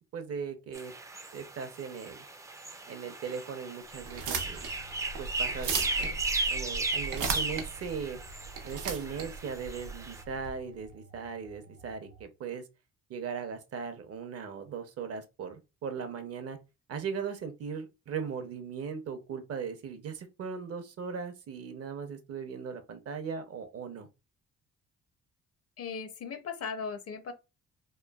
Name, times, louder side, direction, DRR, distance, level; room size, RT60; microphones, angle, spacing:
voice 1, 0.1-0.9 1.3-2.3 2.9-4.6 5.2-5.7 6.0-6.2 6.5-8.2 8.6-12.6 13.1-16.6 16.9-24.1, right 6 dB, 50° right, 0.6 m, -38 dB
sound 1, 0.7-10.2, right 3 dB, 10° right, 0.3 m, -36 dB
sound 2, 4.0-10.5, right 5 dB, 85° right, 0.6 m, -36 dB
sound 3, 4.8-12.3, right 3 dB, 90° left, 1.2 m, -55 dB
voice 2, 25.8-27.3, left 5 dB, 50° left, 0.6 m, -37 dB
3.0 x 2.2 x 2.2 m
cardioid pair, 90°, 30 cm